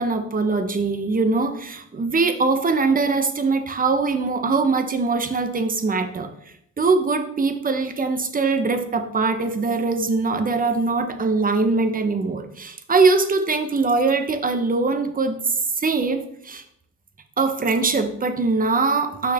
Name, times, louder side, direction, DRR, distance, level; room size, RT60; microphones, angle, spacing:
voice 1, 0.0-6.3 6.8-16.6 17.4-19.3, right 4 dB, 30° right, 7 dB, 0.9 m, -22 dB
6.4 x 5.6 x 3.5 m, 0.73 s
cardioid pair, 90°, 30 cm